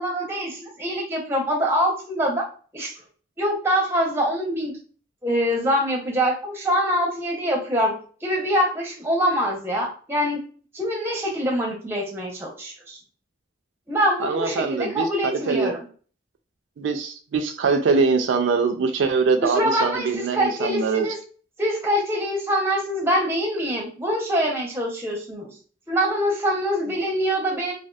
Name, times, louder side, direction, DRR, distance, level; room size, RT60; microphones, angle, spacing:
voice 1, 0.0-2.4 2.7-2.9 3.4-4.7 5.2-10.4 10.7-13.0 13.9-15.8 19.4-21.2 21.6-25.5 25.9-27.7, equal, 10° right, -1 dB, 0.6 m, -24 dB
voice 2, 14.2-15.7 16.8-21.1, right 4 dB, 75° right, 6 dB, 0.3 m, -23 dB
2.5 x 2.4 x 2.2 m, 0.41 s
head